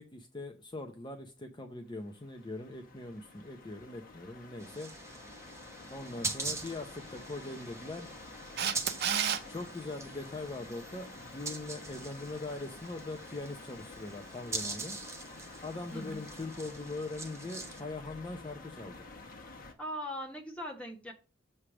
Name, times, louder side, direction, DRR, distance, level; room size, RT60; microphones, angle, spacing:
voice 1, 0.0-4.9 5.9-8.1 9.5-15.0 15.6-19.0, left 2 dB, 25° left, 0.7 m, -41 dB
sound 1, 1.8-19.7, left 3 dB, 45° left, 1.2 m, -50 dB
sound 2, 4.6-17.8, right 3 dB, 15° right, 0.8 m, -43 dB
Camera, 8.6-9.4 16.1-16.2, right 8 dB, 55° right, 0.6 m, -30 dB
voice 2, 15.9-16.3 19.8-21.1, equal, 5° left, 1.3 m, -40 dB
7.2 x 3.3 x 6.1 m
head